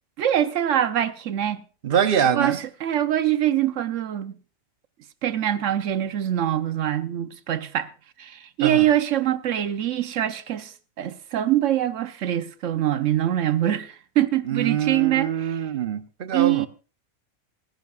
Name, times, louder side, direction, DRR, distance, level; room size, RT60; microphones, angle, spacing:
voice 1, 0.2-1.6 2.3-4.4 5.2-7.9 8.2-15.6 16.3-16.7, right 11 dB, 65° right, 1.1 m, -24 dB
voice 2, 1.8-2.6 8.6-8.9 14.5-16.7, right 8 dB, 50° right, 0.8 m, -24 dB
25.5 x 10.5 x 2.4 m
omnidirectional pair, 1.4 m